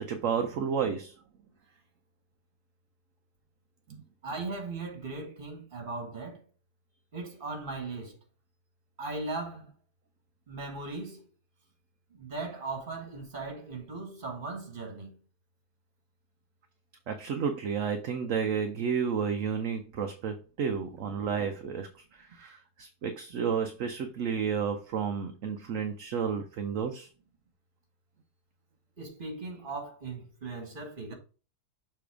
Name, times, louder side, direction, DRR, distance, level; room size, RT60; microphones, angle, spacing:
voice 1, 0.1-1.1 3.9-4.0 17.1-27.1, right 6 dB, 60° right, 0.9 m, -31 dB
voice 2, 4.2-6.4 7.1-8.2 9.0-9.7 10.5-11.2 12.1-15.2 29.0-31.1, right 3 dB, 30° right, 1.7 m, -38 dB
6.9 x 3.4 x 4.9 m
omnidirectional pair, 1.8 m